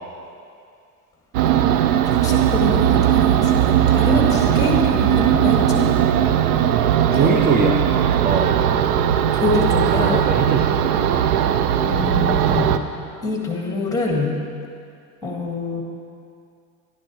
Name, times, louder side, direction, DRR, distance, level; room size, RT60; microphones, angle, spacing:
sound 1, 1.3-12.8, right 10 dB, 80° right, 0.6 m, -18 dB
voice 1, 2.1-5.9 7.2-7.8 9.3-10.3 11.8-12.8 13.2-14.4 15.2-15.8, left 3 dB, 5° left, 0 dB, 1.9 m, -25 dB
voice 2, 7.1-7.7 8.2-8.5 10.0-11.3, right 5 dB, 20° right, 3 dB, 0.6 m, -22 dB
12.0 x 10.5 x 3.1 m, 2.4 s
supercardioid pair, 105°, 45 cm